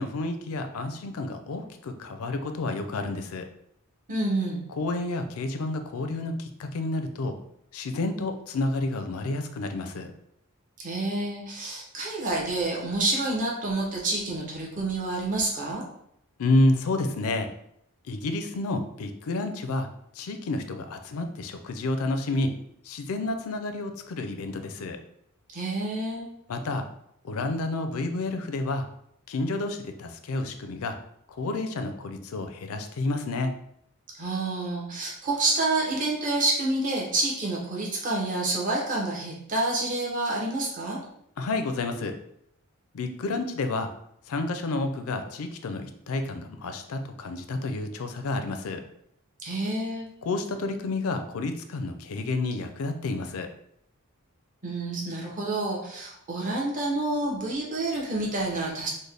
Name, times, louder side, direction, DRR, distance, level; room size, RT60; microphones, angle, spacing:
voice 1, 0.0-3.5 4.8-7.4 7.7-10.1 16.4-17.5 18.0-19.9 20.1-22.6 22.8-25.0 26.5-26.8 27.2-28.9 29.3-31.0 31.4-33.5 41.4-42.1 42.9-43.9 44.3-48.8 50.2-53.5, left 2 dB, 70° left, 7 dB, 0.4 m, -30 dB
voice 2, 4.1-4.6 10.8-15.8 25.5-26.3 34.1-41.0 49.4-50.1 54.6-58.9, right 2 dB, 35° right, -3 dB, 0.7 m, -28 dB
3.9 x 2.1 x 3.3 m, 0.73 s
head